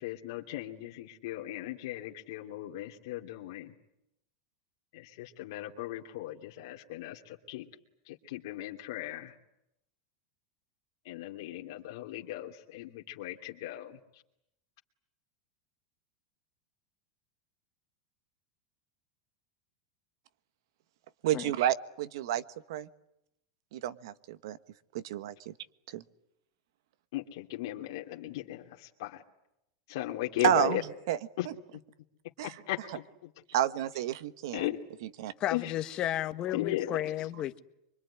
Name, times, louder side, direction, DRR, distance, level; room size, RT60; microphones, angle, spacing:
voice 1, 0.0-3.7 5.2-7.2 7.5-7.6 8.3-9.3 11.1-14.0 27.1-28.6 29.0-29.1 29.9-30.8 31.4-31.5 32.7-32.8 34.5-34.8 35.5-35.6 36.5-37.0, left 15 dB, 70° left, 2.6 m, -36 dB
voice 2, 21.2-22.4 22.7-22.9 23.7-24.6 24.9-25.5 25.9-26.0 30.4-31.2 31.4-31.5 32.4-32.6 33.5-34.7 35.0-35.3, right 11 dB, 70° right, 1.4 m, -30 dB
voice 3, 35.4-37.6, left 12 dB, 35° left, 1.5 m, -33 dB
25.0 x 23.5 x 9.9 m
supercardioid pair, 135°, 2 cm